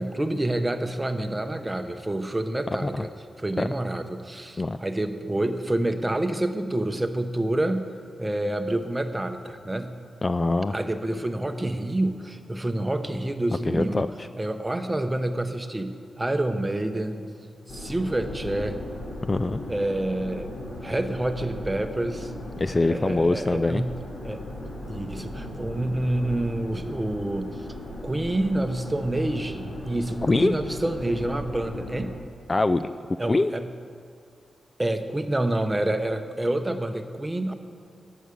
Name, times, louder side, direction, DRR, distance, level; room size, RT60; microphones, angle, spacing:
voice 1, 0.0-3.1 3.4-7.9 8.2-9.9 10.7-14.1 14.4-17.2 17.7-18.8 19.7-20.5 20.8-22.3 22.8-23.9 24.2-24.4 24.9-27.7 28.0-32.1 33.2-33.7 34.8-37.5, right 1 dB, 15° right, 8 dB, 0.9 m, -28 dB
voice 2, 10.2-10.7 13.7-14.1 19.3-19.6 22.6-23.8 30.2-30.5 32.5-32.9 33.3-33.5, left 2 dB, 30° left, 11 dB, 0.4 m, -23 dB
sound 1, 17.7-32.1, left 1 dB, 75° left, 3.6 m, -37 dB
12.0 x 7.7 x 8.3 m, 2.4 s
cardioid pair, 90°, 0 cm